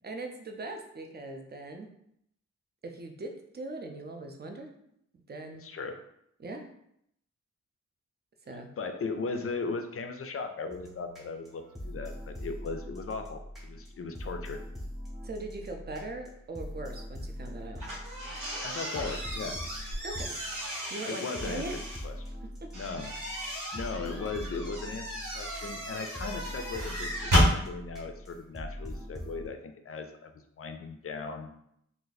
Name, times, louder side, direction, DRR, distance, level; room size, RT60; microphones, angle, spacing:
voice 1, 0.0-1.9 2.8-4.7 5.1-5.6 6.4-6.7 8.5-8.7 15.2-17.8 20.0-20.4 20.9-21.7 23.4-23.6, right 2 dB, 35° right, 3 dB, 0.5 m, -40 dB
voice 2, 5.6-6.0 8.8-14.6 18.6-19.6 21.1-21.6 22.0-22.2 22.7-23.1 23.5-31.5, left 4 dB, 50° left, 6 dB, 0.4 m, -37 dB
sound 1, 10.7-29.5, equal, ahead, 0.8 m, -42 dB
sound 2, 17.8-22.0 22.7-27.5, equal, 80° right, 1.2 m, -32 dB
2.6 x 2.4 x 3.9 m, 0.74 s
wide cardioid pair, 130°, 30 cm